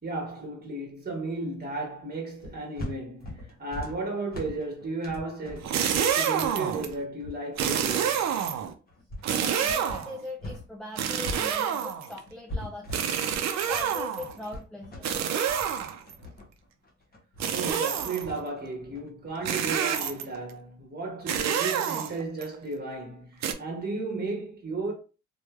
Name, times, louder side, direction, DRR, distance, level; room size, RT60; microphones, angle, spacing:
voice 1, 0.0-5.8 6.1-8.2 17.5-24.9, right 3 dB, 30° right, 1.3 m, -34 dB
sound 1, 2.4-10.7 10.9-19.7, left 1 dB, 30° left, 0.8 m, -41 dB
sound 2, 5.6-6.9 7.6-8.7 9.2-10.2 11.0-12.2 12.9-14.4 15.0-16.1 17.4-18.3 19.5-20.4 21.3-22.4 23.4-23.5, right 8 dB, 60° right, 0.5 m, -28 dB
voice 2, 9.4-13.1 13.4-15.1, left 2 dB, 5° left, 0.4 m, -41 dB
3.0 x 2.3 x 2.3 m
cardioid pair, 90°, 30 cm